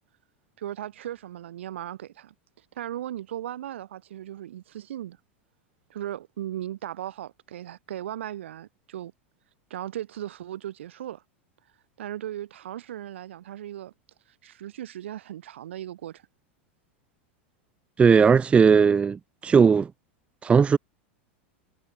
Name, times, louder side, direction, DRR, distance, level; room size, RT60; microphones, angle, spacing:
voice 1, 0.6-2.3 2.7-5.2 5.9-9.1 9.7-11.2 12.0-13.9 14.4-16.2, right 12 dB, 80° right, 6.2 m, -37 dB
voice 2, 18.0-19.9 20.4-20.8, right 6 dB, 20° right, 0.6 m, -18 dB
hypercardioid pair, 110°, 6 cm